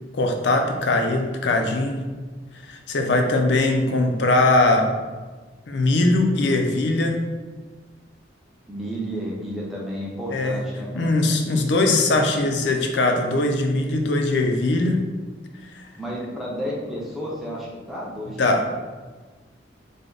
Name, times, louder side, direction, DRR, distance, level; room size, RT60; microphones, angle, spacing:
voice 1, 0.1-2.0 2.6-4.9 5.7-7.2 10.3-10.6 11.0-15.0 15.7-15.8 18.4-18.6, left 2 dB, 70° left, 3 dB, 0.5 m, -21 dB
voice 2, 8.7-11.1 16.0-18.4, equal, ahead, -6 dB, 0.6 m, -31 dB
3.3 x 2.1 x 3.8 m, 1.3 s
head